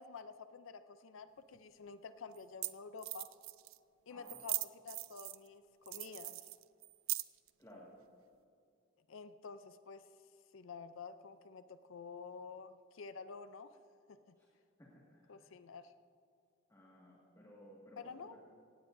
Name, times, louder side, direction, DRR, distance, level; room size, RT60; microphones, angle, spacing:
voice 1, 0.0-3.3 4.1-4.6 4.8-6.4 9.1-10.0 10.5-13.7 14.3-14.4 15.3-15.9 18.0-18.4, left 5 dB, 70° left, 11 dB, 0.5 m, -50 dB
sound 1, 1.5-1.6 2.4-2.5 2.6-2.7 3.0-3.8 4.3-5.5 5.9-7.5, right 19 dB, 75° right, 0.4 m, -40 dB
voice 2, 4.1-4.4 7.6-7.9 14.3-14.5 14.8-15.4 16.7-18.4, equal, 15° left, -5 dB, 1.9 m, -58 dB
17.0 x 17.0 x 2.6 m, 2.5 s
head